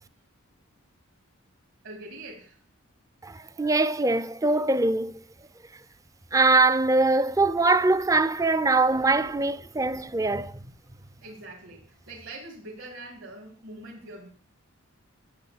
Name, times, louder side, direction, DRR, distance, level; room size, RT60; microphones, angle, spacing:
voice 1, 1.8-2.6 11.2-14.3, right 2 dB, 65° right, 2.8 m, -43 dB
voice 2, 3.2-5.2 6.3-10.6, right 3 dB, 15° right, 0.4 m, -22 dB
10.0 x 7.8 x 7.7 m
head